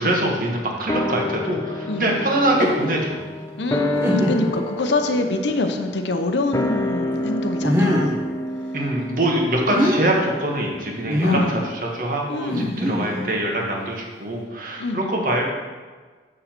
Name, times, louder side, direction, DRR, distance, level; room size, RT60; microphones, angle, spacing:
voice 1, 0.0-3.2 8.7-15.4, right 1 dB, 50° right, 0 dB, 1.5 m, -24 dB
sound 1, 0.9-11.5 11.8-11.9, left 1 dB, 15° left, 0.4 m, -29 dB
sound 2, 2.4-2.9 3.5-3.6 4.0-4.6 5.2-5.3 7.6-8.2 9.5-10.0 11.1-11.5 12.5-13.3, left 1 dB, 15° right, 1.2 m, -22 dB
voice 2, 3.6-8.1 11.2-11.7 12.3-12.9 14.8-15.0, left 2 dB, 85° left, 6 dB, 0.8 m, -25 dB
7.5 x 6.7 x 4.4 m, 1.4 s
head